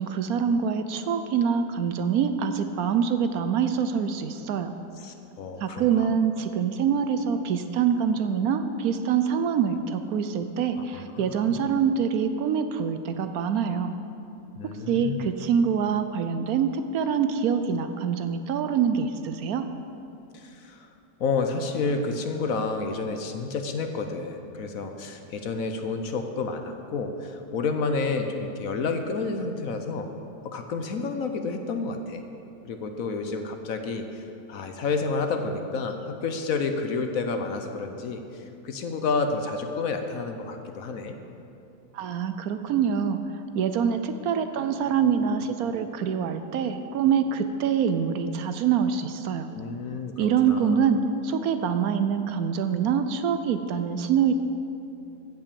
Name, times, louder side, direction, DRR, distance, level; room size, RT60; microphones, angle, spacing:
voice 1, 0.0-4.7 5.6-13.9 14.9-19.7 41.9-43.2 43.5-49.5 50.2-54.3, right 7 dB, 70° right, 9 dB, 1.0 m, -25 dB
voice 2, 5.0-6.2 10.8-11.6 14.6-15.3 20.3-20.9 21.2-30.1 30.4-32.2 32.6-34.2 34.5-41.2 49.5-50.8, left 4 dB, 60° left, 6 dB, 1.1 m, -30 dB
15.5 x 5.9 x 6.9 m, 2.7 s
omnidirectional pair, 1.7 m